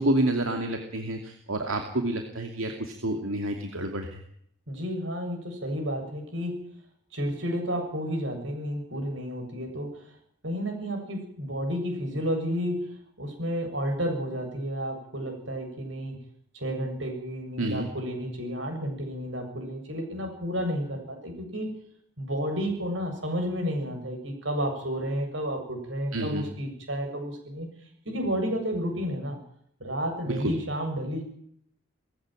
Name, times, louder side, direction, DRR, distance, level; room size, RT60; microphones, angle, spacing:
voice 1, 0.0-4.2 17.6-17.9 26.1-26.5 30.3-30.5, right 1 dB, 85° right, 4 dB, 2.6 m, -29 dB
voice 2, 4.7-6.6 7.1-10.0 10.4-12.9 13.2-16.2 16.5-21.7 22.2-27.7 28.1-29.4 29.8-31.2, equal, 65° right, 4 dB, 7.6 m, -31 dB
19.5 x 15.5 x 9.2 m, 0.66 s
head